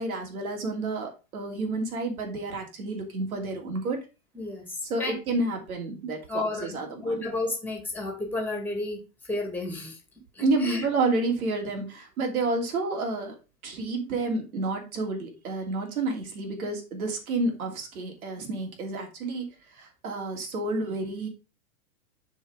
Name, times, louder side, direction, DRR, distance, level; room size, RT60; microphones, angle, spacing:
voice 1, 0.0-4.0 4.9-7.2 10.4-13.4 13.6-21.3, right 2 dB, 85° right, 2 dB, 2.9 m, -30 dB
voice 2, 4.3-5.2 6.3-10.0 10.4-10.9, left 2 dB, 5° left, 4 dB, 2.1 m, -32 dB
7.2 x 4.7 x 4.8 m, 0.29 s
supercardioid pair, 145°, 42 cm